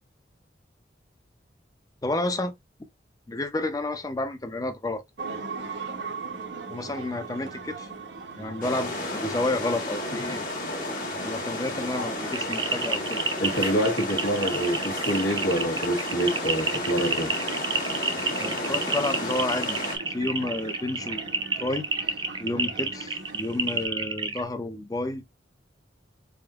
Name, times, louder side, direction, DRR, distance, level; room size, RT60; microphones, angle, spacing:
voice 1, 2.0-2.5 3.3-5.0 6.7-7.9 8.4-10.5 11.0-13.2 18.4-19.8 20.1-21.9 22.4-25.2, left 2 dB, 20° left, 0.5 m, -30 dB
sound 1, 5.2-23.9, right 3 dB, 70° right, 0.9 m, -40 dB
sound 2, 8.6-20.0, left 1 dB, 45° left, 1.2 m, -32 dB
sound 3, 12.3-24.4, right 4 dB, 25° right, 0.6 m, -30 dB
voice 2, 13.4-17.3, right 1 dB, 75° left, 1.1 m, -26 dB
3.8 x 3.5 x 2.3 m
head